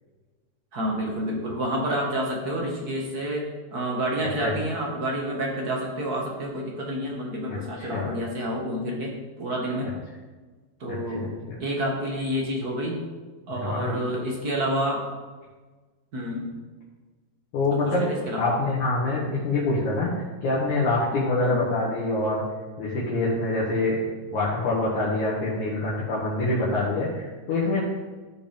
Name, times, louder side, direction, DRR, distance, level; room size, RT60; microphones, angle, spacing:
voice 1, 0.7-3.4 3.7-9.1 9.4-9.9 10.8-11.3 11.6-13.0 13.5-15.0 16.1-16.5 17.7-18.5 21.4-21.6, right 1 dB, 40° right, -1 dB, 1.3 m, -29 dB
voice 2, 10.9-11.6 13.6-14.0 17.5-18.0 18.3-20.1 20.4-22.4 22.8-24.0 24.3-27.8, left 2 dB, 60° left, -6 dB, 2.8 m, -25 dB
14.5 x 5.0 x 5.2 m, 1.3 s
omnidirectional pair, 4.0 m